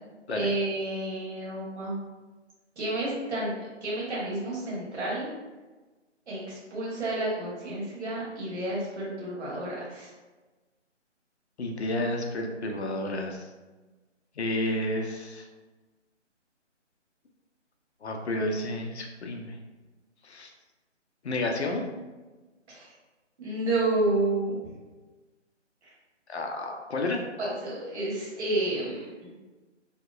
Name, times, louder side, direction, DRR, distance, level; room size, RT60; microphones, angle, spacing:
voice 1, 0.3-2.0 2.8-5.3 6.3-10.1 22.7-22.9 23.4-24.6 25.8-25.9 27.4-29.3, right 2 dB, 65° right, -7 dB, 1.2 m, -30 dB
voice 2, 11.6-13.5 14.4-15.4 18.0-19.6 20.2-20.5 21.2-21.8 26.3-27.2, left 1 dB, 60° left, 2 dB, 0.5 m, -31 dB
2.8 x 2.0 x 2.3 m, 1.2 s
figure-of-eight pair, 160°, 37 cm